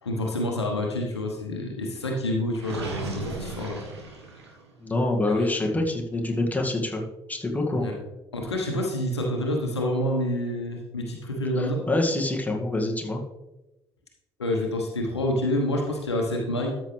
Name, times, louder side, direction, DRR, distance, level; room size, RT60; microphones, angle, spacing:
voice 1, 0.0-3.8 5.3-5.5 7.7-7.9 8.3-11.8 14.4-16.7, left 1 dB, 85° left, 1 dB, 1.2 m, -28 dB
Gurgling, 2.6-4.7, right 3 dB, 80° right, 1.4 m, -36 dB
voice 2, 4.8-7.0 7.3-7.9 11.6-13.2, left 2 dB, 10° left, 0 dB, 2.0 m, -26 dB
13.0 x 6.6 x 3.3 m, 0.97 s
figure-of-eight pair, 50°, 14 cm